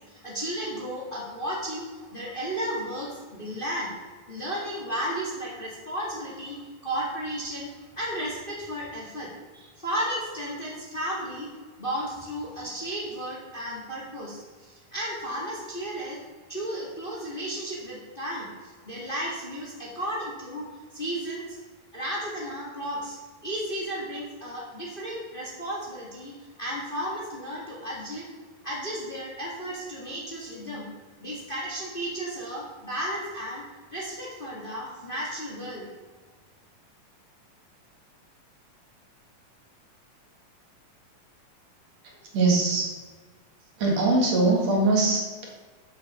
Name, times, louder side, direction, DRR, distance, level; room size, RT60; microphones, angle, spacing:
voice 1, 0.0-3.9 4.3-7.7 8.0-11.5 11.8-16.2 16.5-20.7 20.9-21.6 21.9-28.3 28.6-30.9 31.2-33.6 33.9-35.9, equal, 20° left, -4 dB, 1.7 m, -34 dB
voice 2, 42.3-43.0 43.8-45.5, right 3 dB, 65° right, -1 dB, 3.1 m, -22 dB
8.3 x 6.4 x 7.0 m, 1.4 s
omnidirectional pair, 3.3 m